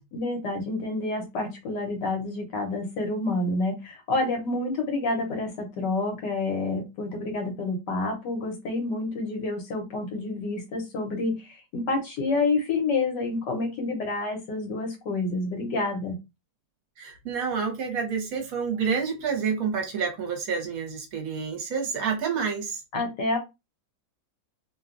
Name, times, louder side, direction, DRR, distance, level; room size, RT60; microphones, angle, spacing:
voice 1, 0.1-16.2 22.9-23.4, left 2 dB, 75° left, 2 dB, 1.4 m, -28 dB
voice 2, 17.0-22.8, right 6 dB, 60° right, 3 dB, 1.1 m, -28 dB
3.1 x 2.2 x 2.5 m, 0.24 s
omnidirectional pair, 1.9 m